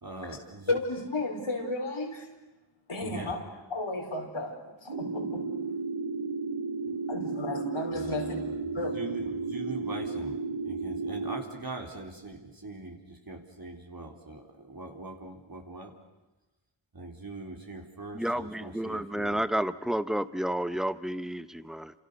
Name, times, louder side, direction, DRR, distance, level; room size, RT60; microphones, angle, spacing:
voice 1, 0.0-0.8 3.0-3.4 7.9-10.4 10.6-15.9 16.9-19.5, right 2 dB, 45° right, 2 dB, 4.0 m, -42 dB
voice 2, 0.7-2.3 2.9-3.4 3.7-5.4 7.1-8.4 8.7-8.9, left 2 dB, 80° left, 0 dB, 5.1 m, -33 dB
sound 1, 4.9-11.4, right 3 dB, 85° right, 2.8 m, -33 dB
voice 3, 18.2-21.9, right 1 dB, ahead, 13 dB, 1.0 m, -31 dB
29.5 x 27.5 x 6.8 m, 1.1 s
wide cardioid pair, 80°, 49 cm